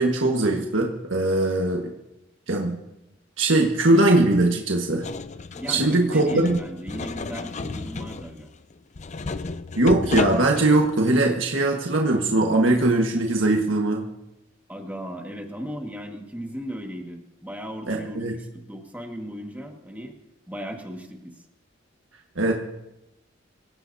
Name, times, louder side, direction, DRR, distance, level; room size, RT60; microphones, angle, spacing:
voice 1, 0.0-1.9 2.5-2.8 3.4-5.1 5.7-6.5 9.8-14.0 17.9-18.4 22.3-22.5, right 2 dB, 85° right, 1 dB, 1.6 m, -21 dB
sound 1, 5.0-11.0, left 3 dB, 35° left, 0.5 m, -32 dB
voice 2, 5.6-8.5 14.7-20.2 20.5-21.3, equal, 10° right, 2 dB, 1.8 m, -36 dB
25.0 x 16.5 x 2.8 m, 0.92 s
head